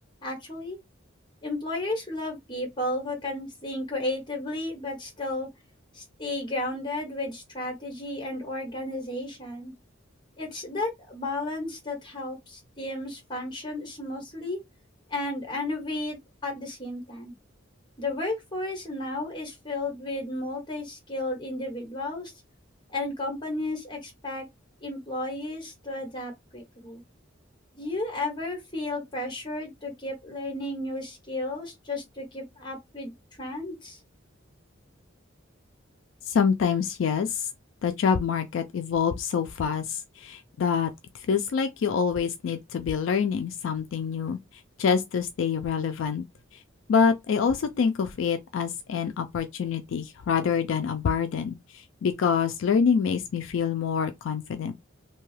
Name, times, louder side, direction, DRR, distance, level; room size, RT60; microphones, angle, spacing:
voice 1, 0.2-0.8 1.4-5.5 5.9-9.7 10.4-14.6 15.1-17.3 18.0-22.3 22.9-24.5 24.8-27.0 27.7-33.1 33.4-34.0, left 2 dB, 25° left, 1.1 m, -33 dB
voice 2, 36.3-37.5 37.8-44.4 44.8-46.2 46.9-54.7, left 6 dB, 70° left, 0.3 m, -26 dB
2.7 x 2.3 x 3.1 m
head